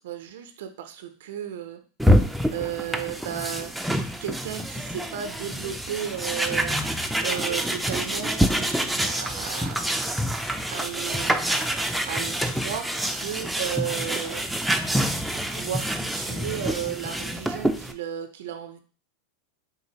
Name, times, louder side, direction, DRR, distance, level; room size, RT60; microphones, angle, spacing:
voice 1, 0.0-1.8 2.5-3.8 4.2-6.8 7.2-9.9 10.7-11.5 12.1-14.5 15.3-18.8, right 9 dB, 75° right, 8 dB, 0.5 m, -34 dB
sound 1, 2.0-17.9, equal, 5° right, 0.3 m, -26 dB
3.8 x 2.5 x 2.8 m, 0.38 s
hypercardioid pair, 110°, 0 cm